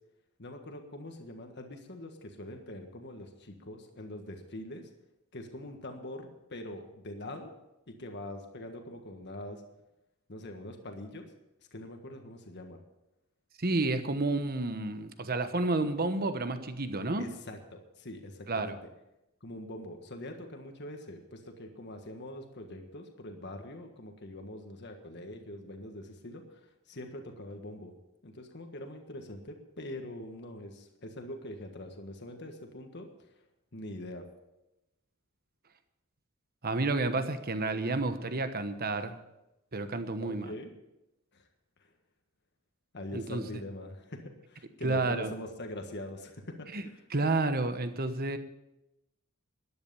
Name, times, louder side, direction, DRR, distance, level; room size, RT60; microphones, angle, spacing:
voice 1, 0.4-4.9 5.3-7.5 7.9-9.6 10.3-11.2 11.7-12.8 15.8-15.9 17.2-18.8 19.4-27.9 28.2-33.3 33.7-34.3 40.2-40.7 41.3-41.5 41.8-41.9 42.9-47.0, left 1 dB, 55° left, 4 dB, 1.6 m, -43 dB
voice 2, 13.6-17.3 18.5-18.8 36.6-39.2 39.7-40.5 43.1-43.6 44.8-45.3 46.7-46.8 47.1-48.4, right 2 dB, 45° right, 9 dB, 1.1 m, -30 dB
13.0 x 10.5 x 7.0 m, 0.91 s
head